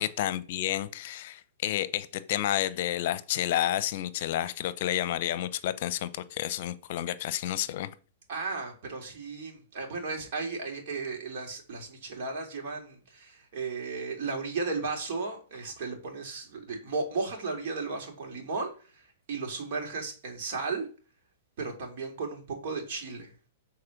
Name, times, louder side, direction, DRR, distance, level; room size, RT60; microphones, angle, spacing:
voice 1, 0.0-7.9, left 12 dB, 55° left, 0.7 m, -30 dB
voice 2, 8.3-18.7 19.3-20.8 21.6-23.3, right 4 dB, 55° right, 3.0 m, -35 dB
7.8 x 4.2 x 5.9 m
hypercardioid pair, 120°, 0 cm